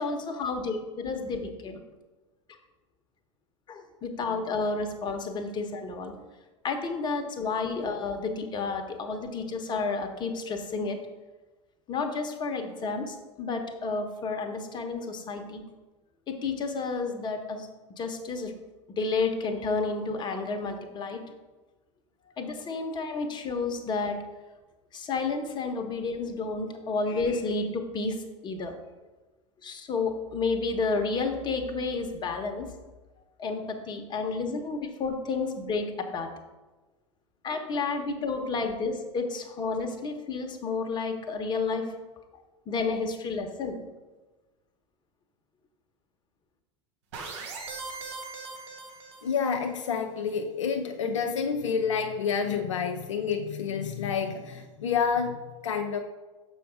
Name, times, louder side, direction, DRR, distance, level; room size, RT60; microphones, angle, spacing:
voice 1, 0.0-1.8 3.7-6.2 6.6-11.0 11.9-15.6 16.3-17.7 18.0-18.5 19.0-21.2 22.4-24.2 24.9-28.7 29.6-32.7 33.4-36.3 37.4-41.8 42.7-43.8, left 4 dB, 25° left, 5 dB, 1.0 m, -31 dB
sound 1, 47.1-49.6, right 4 dB, 60° right, 1.5 m, -40 dB
voice 2, 49.2-56.0, left 6 dB, 70° left, 5 dB, 0.6 m, -29 dB
6.8 x 4.8 x 4.7 m, 1.2 s
figure-of-eight pair, 80°, 17 cm